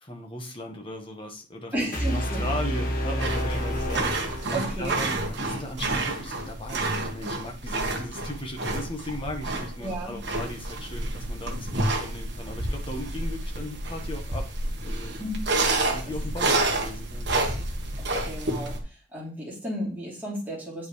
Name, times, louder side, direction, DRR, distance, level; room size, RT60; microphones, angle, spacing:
voice 1, 0.0-4.1 4.5-14.5 14.8-15.1 15.9-17.6, left 1 dB, 25° left, 3 dB, 1.4 m, -37 dB
voice 2, 1.7-2.4 4.5-5.0 9.8-10.1 15.2-15.4 18.0-18.8 19.1-20.9, equal, 10° right, -6 dB, 3.2 m, -33 dB
sound 1, 1.9-5.0, equal, 45° left, 1.6 m, -29 dB
sound 2, 3.2-18.8, right 2 dB, 60° right, 1.4 m, -29 dB
9.4 x 5.3 x 3.2 m, 0.35 s
head